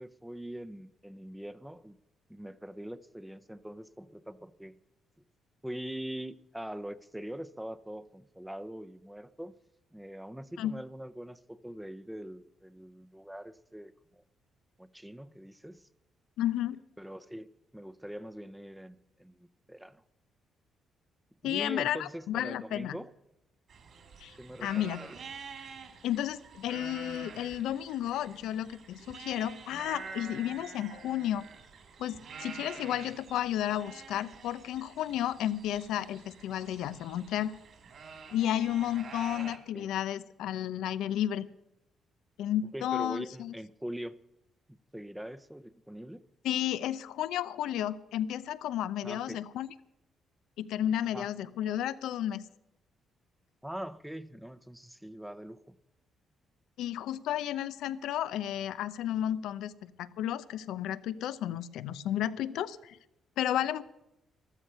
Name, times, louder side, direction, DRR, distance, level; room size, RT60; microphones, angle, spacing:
voice 1, 0.0-2.0 2.3-4.8 5.6-9.5 9.9-14.2 14.8-15.9 17.0-17.5 17.7-20.0 21.4-23.1 24.4-25.1 39.3-39.9 42.7-44.2 44.7-46.2 49.0-49.4 51.1-51.3 53.6-55.8, right 1 dB, 5° right, 13 dB, 0.7 m, -43 dB
voice 2, 16.4-16.8 21.4-23.0 24.2-25.0 26.0-31.4 32.0-37.5 38.3-41.5 42.4-43.5 46.4-49.7 50.6-52.4 56.8-59.7 60.0-63.0 63.4-63.8, left 11 dB, 85° left, 15 dB, 0.6 m, -32 dB
sound 1, 23.7-39.6, right 5 dB, 60° right, 2.7 m, -48 dB
14.0 x 13.0 x 5.6 m, 0.88 s
cardioid pair, 90°, 0 cm